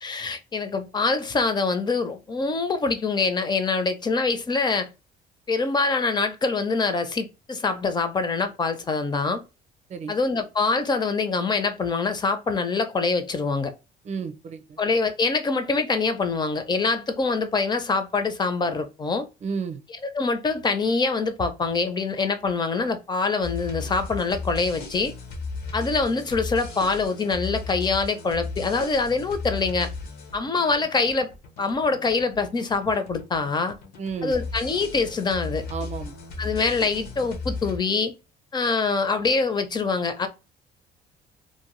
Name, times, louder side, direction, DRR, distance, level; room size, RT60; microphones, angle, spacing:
voice 1, 0.0-4.9 5.5-9.4 10.1-13.7 14.8-19.3 20.1-25.1 25.7-29.9 30.3-31.3 31.6-33.8 34.2-35.6 36.4-38.1 38.5-40.3, left 4 dB, 25° left, 0.5 m, -24 dB
voice 2, 14.0-14.8 19.4-19.8 34.0-34.4 35.7-36.2, right 5 dB, 40° right, 0.6 m, -32 dB
sound 1, 23.4-37.8, left 3 dB, 75° left, 0.9 m, -36 dB
2.6 x 2.2 x 3.1 m
cardioid pair, 110°, 17 cm